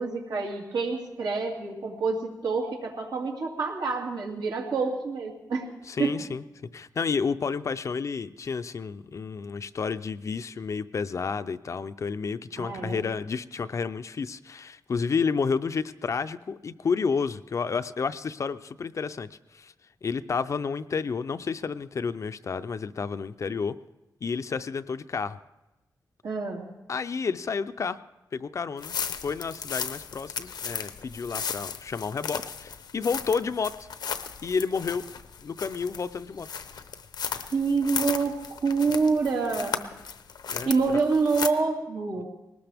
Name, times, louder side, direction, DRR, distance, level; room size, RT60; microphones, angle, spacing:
voice 1, 0.0-5.7 6.0-6.1 12.6-13.1 26.2-26.7 37.5-39.9 40.6-42.2, right 4 dB, 85° right, -1 dB, 2.5 m, -27 dB
voice 2, 5.9-6.4 6.7-19.7 20.0-23.8 24.2-25.4 26.9-28.0 28.3-33.9 34.4-35.0 35.4-36.5 40.5-41.0, left 5 dB, 45° left, 12 dB, 0.5 m, -30 dB
sound 1, 28.8-41.5, left 6 dB, 85° left, 0.8 m, -36 dB
20.5 x 19.0 x 3.5 m, 1.0 s
wide cardioid pair, 155°, 7 cm